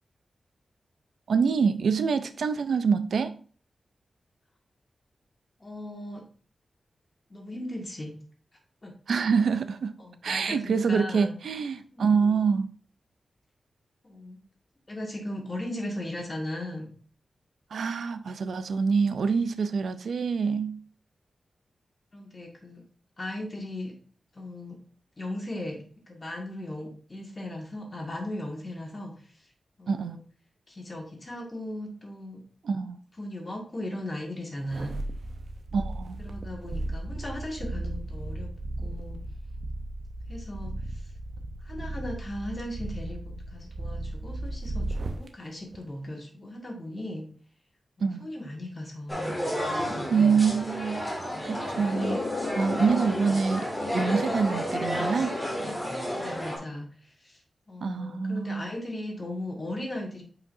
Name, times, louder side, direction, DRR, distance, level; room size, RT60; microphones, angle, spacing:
voice 1, 1.3-3.4 9.1-9.9 10.2-12.7 17.7-20.8 29.9-30.2 32.6-33.0 35.7-36.2 48.0-48.3 50.1-51.1 51.4-53.7 53.9-55.4 57.8-58.7, right 5 dB, 85° right, 0.4 m, -26 dB
voice 2, 5.6-6.2 7.3-8.2 8.8-8.9 10.0-11.3 11.9-12.1 14.0-14.4 14.9-16.9 22.1-22.8 23.2-24.0 24.3-24.8 25.2-29.5 29.8-30.2 30.7-32.4 33.2-35.0 36.2-38.5 38.8-39.2 40.3-41.1 41.6-47.3 48.0-49.4 49.7-50.3 56.1-57.4 57.7-60.2, left 1 dB, 30° left, 1.9 m, -37 dB
sound 1, 34.6-45.3 45.7-45.8, right 2 dB, 55° right, 0.7 m, -35 dB
sound 2, 49.1-56.6, equal, ahead, 2.4 m, -31 dB
sound 3, 51.9-55.9, left 3 dB, 55° left, 0.6 m, -37 dB
8.1 x 5.0 x 2.6 m
wide cardioid pair, 110°, 0 cm